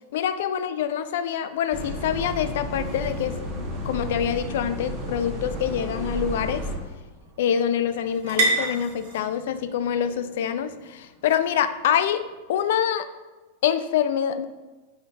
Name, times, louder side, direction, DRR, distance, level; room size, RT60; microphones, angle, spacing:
voice 1, 0.1-6.7 7.4-12.2 12.5-13.1 13.6-14.5, left 9 dB, 60° left, 12 dB, 0.4 m, -25 dB
sound 1, 1.7-6.7, equal, 40° right, 2.3 m, -32 dB
sound 2, 5.3-12.6, right 2 dB, 60° right, 1.8 m, -33 dB
7.6 x 4.3 x 3.8 m, 1.2 s
figure-of-eight pair, 95°, 0 cm